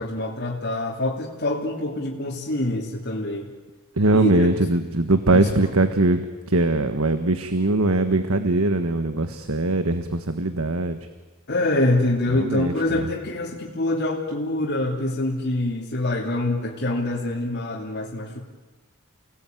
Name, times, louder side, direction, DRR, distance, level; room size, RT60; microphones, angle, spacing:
voice 1, 0.0-3.5 4.1-4.5 5.3-5.5 11.5-18.4, left 1 dB, 50° left, -3 dB, 3.1 m, -25 dB
voice 2, 4.0-6.2 6.5-11.0 12.3-13.0, right 2 dB, 75° right, 9 dB, 1.5 m, -21 dB
30.0 x 19.0 x 9.3 m, 1.3 s
head